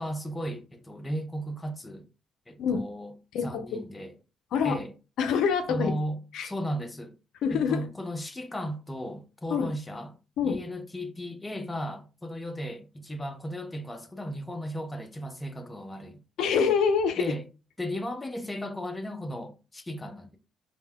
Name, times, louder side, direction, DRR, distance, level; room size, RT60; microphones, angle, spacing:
voice 1, 0.0-2.1 2.5-3.1 3.4-4.1 4.6-4.9 5.7-7.2 7.5-10.2 10.4-16.2 17.2-17.5 17.8-20.4, equal, 15° left, 0.5 m, -35 dB
voice 2, 3.3-3.8 4.5-4.8 5.2-5.9 6.3-6.5 7.4-7.8 9.5-9.7 10.4-10.6 16.4-17.2, left 6 dB, 75° left, 0.4 m, -25 dB
2.1 x 2.1 x 3.4 m
supercardioid pair, 70°, 0 cm